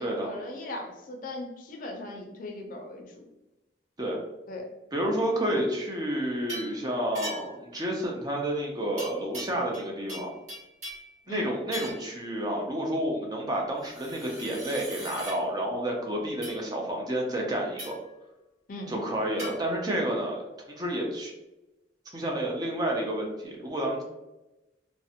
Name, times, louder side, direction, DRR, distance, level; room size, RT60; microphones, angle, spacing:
voice 1, 0.0-3.2 4.5-4.7 11.3-11.5 18.7-19.0, left 2 dB, 50° left, 2 dB, 0.4 m, -38 dB
voice 2, 4.9-10.3 11.3-17.9 18.9-20.4 20.7-21.3 22.1-24.0, right 1 dB, 20° right, 0 dB, 0.4 m, -30 dB
sound 1, 6.5-6.8 7.1-7.6 9.0-9.8 10.1-11.1 11.7-12.1 13.8-15.4 16.4-16.6 17.8-18.1 19.4-19.5, right 1 dB, 40° right, 1.2 m, -39 dB
2.5 x 2.1 x 2.7 m, 0.99 s
head